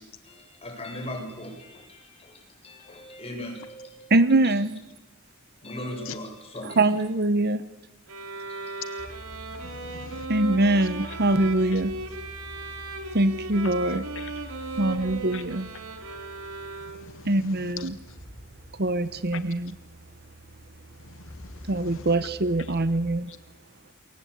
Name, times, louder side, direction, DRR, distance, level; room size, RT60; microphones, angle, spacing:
voice 1, 0.3-4.1 4.4-4.5 5.6-6.8 8.5-8.7, left 1 dB, 30° left, 3 dB, 7.9 m, -39 dB
voice 2, 4.1-4.8 6.6-7.6 10.3-11.9 13.1-14.1 14.8-15.7 17.3-17.9 18.8-19.7 21.7-23.3, right 2 dB, 45° right, 14 dB, 1.1 m, -23 dB
sound 1, 8.1-17.3, right 3 dB, 80° right, 4.4 m, -37 dB
sound 2, 9.0-23.2, left 1 dB, 10° left, 3.4 m, -46 dB
voice 3, 9.6-10.3 10.8-11.2 11.7-11.8 14.2-14.3 15.3-15.4 17.0-17.9 21.1-22.1 22.6-22.7 23.3-23.4, left 7 dB, 60° left, 13 dB, 0.9 m, -43 dB
28.0 x 23.0 x 8.8 m, 0.99 s
head